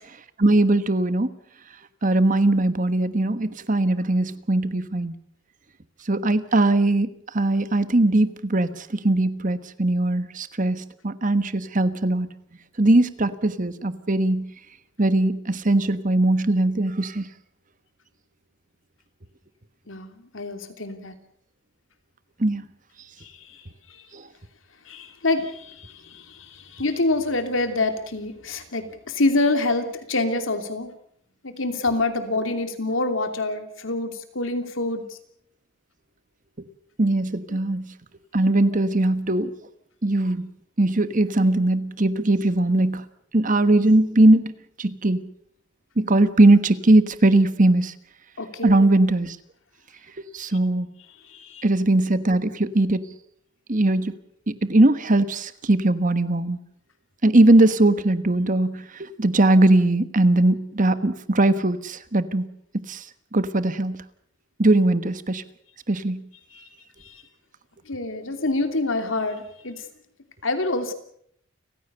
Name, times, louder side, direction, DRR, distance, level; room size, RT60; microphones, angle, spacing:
voice 1, 0.4-1.3 2.0-5.1 6.1-7.1 7.3-12.3 12.8-14.5 15.0-17.2 22.4-22.6 24.1-24.2 37.0-37.9 38.3-39.5 40.0-40.5 40.8-43.0 43.3-45.2 46.0-47.9 48.6-49.4 50.3-50.9 51.6-53.0 53.7-54.1 54.5-56.6 57.2-62.5 62.9-63.0 63.3-64.0 64.6-65.4 65.9-66.2, right 2 dB, 40° right, 12 dB, 1.3 m, -20 dB
voice 2, 19.9-21.1 23.2-24.1 24.9-30.9 31.4-35.0 37.5-37.6 38.7-38.8 48.4-48.8 51.2-51.7 66.5-66.7 67.0-67.2 67.9-69.8 70.4-70.9, left 2 dB, 80° left, 7 dB, 2.9 m, -27 dB
30.0 x 15.5 x 6.9 m, 0.68 s
head